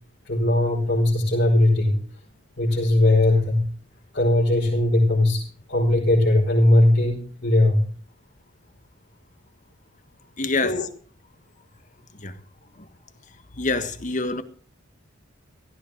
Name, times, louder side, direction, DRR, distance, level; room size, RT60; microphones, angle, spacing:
voice 1, 0.3-2.0 2.6-3.6 4.1-7.8 10.6-10.8, left 1 dB, 55° left, 5.6 m, -19 dB
voice 2, 10.4-10.9 12.1-12.4 12.7-12.9 13.5-14.4, left 3 dB, 40° left, 1.5 m, -26 dB
17.0 x 15.5 x 3.9 m
head